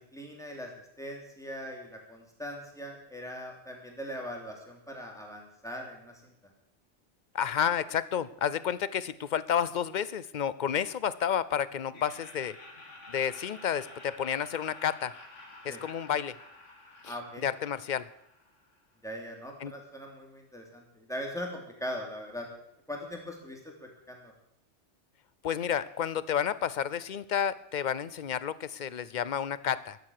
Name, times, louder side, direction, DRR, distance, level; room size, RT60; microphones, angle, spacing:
voice 1, 0.1-0.7 1.0-6.3 15.7-15.8 17.0-17.4 19.0-22.5 22.9-24.3, equal, 5° left, 0 dB, 3.2 m, -40 dB
voice 2, 7.3-12.6 13.1-15.1 15.6-16.3 17.0-18.1 19.6-19.7 25.4-30.0, left 8 dB, 50° left, 17 dB, 0.6 m, -31 dB
Laughter, 11.9-18.9, left 2 dB, 90° left, 2.3 m, -51 dB
13.5 x 11.0 x 6.7 m, 0.77 s
omnidirectional pair, 1.2 m